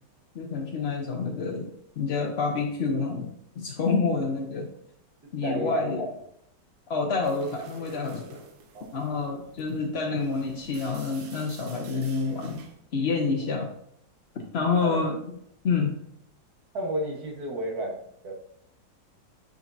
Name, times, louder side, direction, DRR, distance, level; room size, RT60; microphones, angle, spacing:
voice 1, 0.3-1.7 2.0-4.7 5.3-6.1 6.9-8.3 8.9-12.6 12.9-13.7 14.3-15.1 15.6-16.0, left 4 dB, 55° left, 1 dB, 0.7 m, -28 dB
voice 2, 5.4-6.0 8.7-8.9 14.8-15.1 16.7-18.3, right 1 dB, 60° right, 1 dB, 1.8 m, -32 dB
sound 1, 7.2-12.8, right 5 dB, 90° right, 1.6 m, -49 dB
8.9 x 5.2 x 2.6 m, 0.70 s
omnidirectional pair, 2.0 m